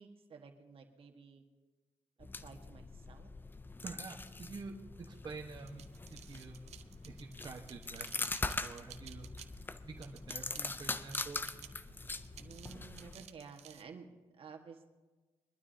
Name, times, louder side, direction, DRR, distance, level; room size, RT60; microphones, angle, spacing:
voice 1, 0.0-1.4 2.2-3.3 12.4-14.1 14.4-14.8, right 5 dB, 60° right, 3 dB, 1.6 m, -53 dB
Standing on broken glass, 2.2-13.3, left 3 dB, 20° left, 0.5 m, -42 dB
voice 2, 3.8-4.7 5.1-5.8 6.1-6.6 7.0-8.3 8.6-9.3 9.8-11.5, right 4 dB, 40° right, 0 dB, 1.2 m, -47 dB
sound 1, 5.6-13.8, right 10 dB, 85° right, 0.7 m, -56 dB
22.5 x 12.0 x 2.8 m, 1.2 s
cardioid pair, 90°, 11 cm